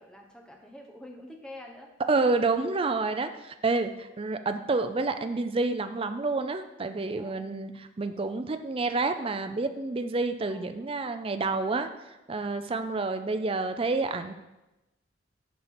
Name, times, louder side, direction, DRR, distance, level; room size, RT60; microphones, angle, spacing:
voice 1, 0.0-1.9 7.1-7.4 10.5-10.8, left 1 dB, 5° left, 1 dB, 0.9 m, -47 dB
voice 2, 2.1-7.7 8.0-11.9 12.3-14.3, right 3 dB, 30° right, 8 dB, 0.4 m, -28 dB
10.5 x 4.5 x 4.3 m, 0.98 s
head